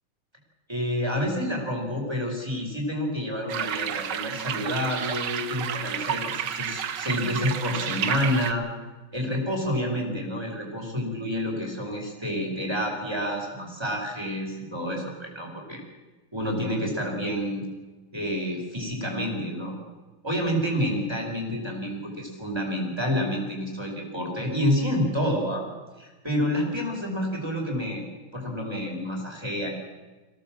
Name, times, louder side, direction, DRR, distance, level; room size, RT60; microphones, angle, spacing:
voice 1, 0.7-8.6 9.1-15.8 16.3-17.6 18.1-19.7 20.2-25.7 26.0-28.0 28.3-29.7, equal, 10° right, 0 dB, 4.9 m, -28 dB
sound 1, 3.5-8.5, right 9 dB, 60° right, 1.5 m, -31 dB
23.5 x 17.0 x 7.5 m, 1.3 s
omnidirectional pair, 2.3 m